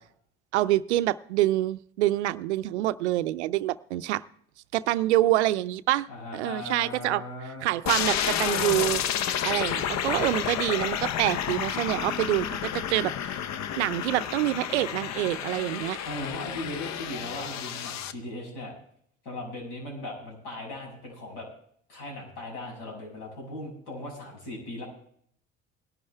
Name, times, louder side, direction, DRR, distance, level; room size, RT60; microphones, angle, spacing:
voice 1, 0.5-4.2 4.7-6.1 6.3-7.2 7.6-9.0 9.4-13.4 13.8-16.0, right 15 dB, 90° right, 16 dB, 0.5 m, -26 dB
voice 2, 6.1-7.7 10.1-10.2 16.0-18.7 19.2-21.5 21.9-24.9, left 1 dB, 70° left, -1 dB, 6.7 m, -38 dB
sound 1, 7.9-18.1, left 9 dB, 55° left, 0.8 m, -30 dB
19.0 x 11.5 x 3.4 m, 0.64 s
hypercardioid pair, 60°, 33 cm